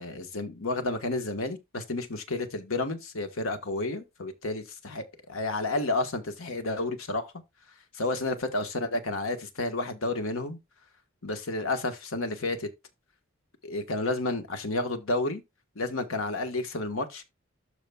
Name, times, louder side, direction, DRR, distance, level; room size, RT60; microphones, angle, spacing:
voice 1, 0.0-7.3 7.9-10.6 11.2-12.7 13.6-15.4 15.7-17.2, left 2 dB, 85° left, 1.4 m, -31 dB
12.5 x 4.8 x 2.3 m
head